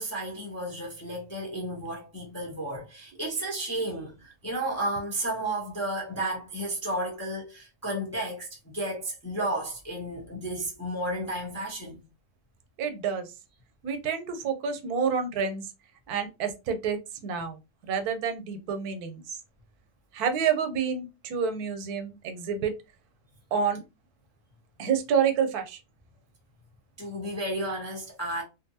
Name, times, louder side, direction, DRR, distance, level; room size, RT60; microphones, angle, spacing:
voice 1, 0.0-12.0 27.0-28.4, right 1 dB, 20° left, 0.4 m, -32 dB
voice 2, 12.8-13.3 13.8-15.7 16.1-17.0 17.2-19.4 20.1-22.7 23.5-23.8 24.8-25.8, right 6 dB, 90° right, 1.1 m, -28 dB
2.5 x 2.5 x 2.7 m
omnidirectional pair, 1.6 m